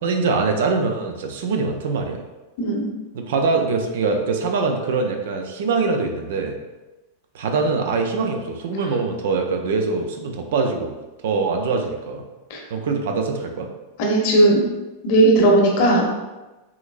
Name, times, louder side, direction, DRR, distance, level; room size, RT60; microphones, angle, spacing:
voice 1, 0.0-2.2 3.1-6.6 7.3-10.9 11.2-12.2 12.7-13.7, right 4 dB, 55° right, 4 dB, 0.5 m, -23 dB
voice 2, 2.6-2.9 12.5-12.6 14.0-14.6 15.0-16.1, right 1 dB, 50° left, -1 dB, 1.0 m, -16 dB
5.6 x 2.7 x 2.5 m, 1.1 s
figure-of-eight pair, 90°, 0 cm